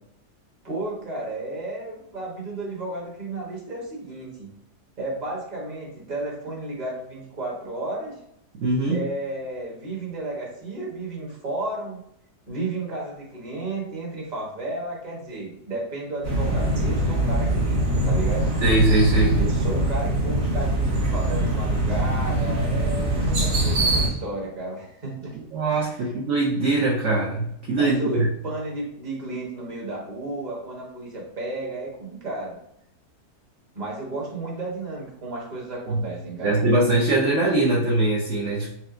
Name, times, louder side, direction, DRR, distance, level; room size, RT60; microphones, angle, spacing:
voice 1, 0.6-4.5 5.0-8.2 8.9-12.0 12.5-18.5 19.4-25.4 25.7-26.1 27.8-32.6 33.7-36.6, right 2 dB, 30° right, -3 dB, 1.1 m, -33 dB
voice 2, 8.6-9.0 18.6-19.4 25.5-28.3 35.9-36.0 36.4-38.7, right 2 dB, 60° right, -4 dB, 0.9 m, -21 dB
sound 1, 16.2-24.1, right 1 dB, 85° right, 1.8 m, -23 dB
5.7 x 2.2 x 2.5 m, 0.75 s
omnidirectional pair, 1.7 m